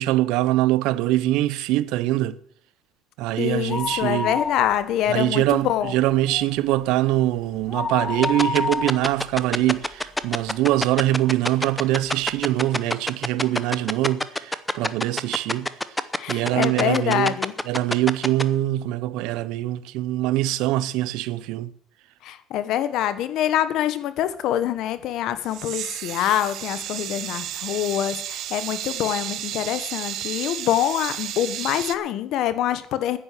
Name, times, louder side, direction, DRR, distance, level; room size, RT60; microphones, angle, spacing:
voice 1, 0.0-2.4 3.2-4.3 5.1-15.7 16.3-17.3 17.7-21.7, right 15 dB, 75° right, 0.7 m, -23 dB
voice 2, 3.4-5.9 16.2-17.5 22.2-33.2, left 11 dB, 65° left, 1.2 m, -25 dB
sound 1, 3.6-5.2 5.5-5.6 6.1-10.5 11.0-11.1 11.9-12.0 12.2-12.3, left 4 dB, 25° left, 1.6 m, -30 dB
sound 2, 8.2-18.4, left 1 dB, 10° left, 0.8 m, -24 dB
sound 3, 25.4-32.0, right 12 dB, 60° right, 1.0 m, -32 dB
10.0 x 9.8 x 7.8 m
cardioid pair, 110°, 0 cm